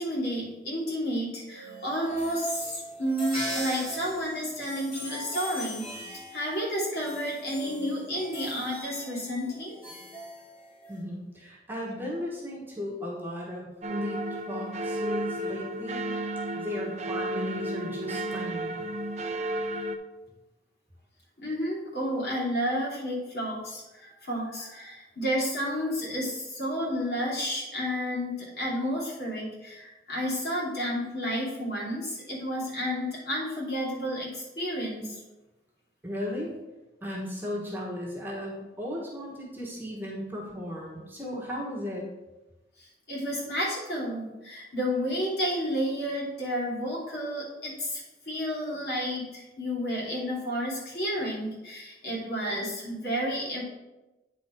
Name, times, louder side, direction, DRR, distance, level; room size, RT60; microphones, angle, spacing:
voice 1, 0.0-9.8 21.4-35.2 42.8-53.6, equal, 60° left, -5 dB, 2.8 m, -31 dB
sound 1, 1.5-11.0, equal, 30° left, 2.7 m, -39 dB
voice 2, 10.9-16.0 16.5-18.8 36.0-36.6 37.0-42.0, left 1 dB, 10° right, -4 dB, 1.4 m, -36 dB
sound 2, 13.8-20.0, right 1 dB, 40° right, 0.5 m, -33 dB
9.2 x 4.0 x 4.6 m, 1.0 s
head